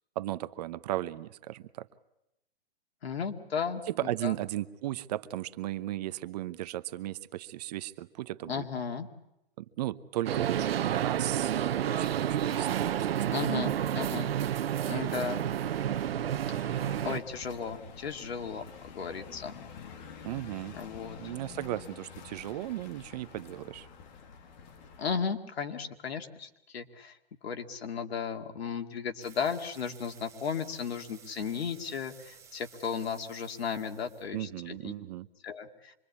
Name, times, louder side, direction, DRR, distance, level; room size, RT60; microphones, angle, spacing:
voice 1, 0.2-1.9 3.9-8.7 9.6-13.3 20.2-20.8 21.2-23.9 34.3-35.3, right 14 dB, 40° right, 14 dB, 0.9 m, -36 dB
voice 2, 3.0-4.3 8.5-9.1 13.3-14.3 14.9-15.5 16.7-19.6 20.8-21.2 25.0-27.1 27.4-34.9 35.4-35.9, left 6 dB, 80° left, 6 dB, 2.4 m, -35 dB
sound 1, 10.3-17.2, right 10 dB, 70° right, 1.1 m, -30 dB
sound 2, 15.6-25.2, left 6 dB, 45° left, 2.4 m, -49 dB
sound 3, 29.2-35.0, right 6 dB, 10° right, 1.8 m, -55 dB
26.0 x 23.0 x 8.5 m, 0.88 s
hypercardioid pair, 150°, 31 cm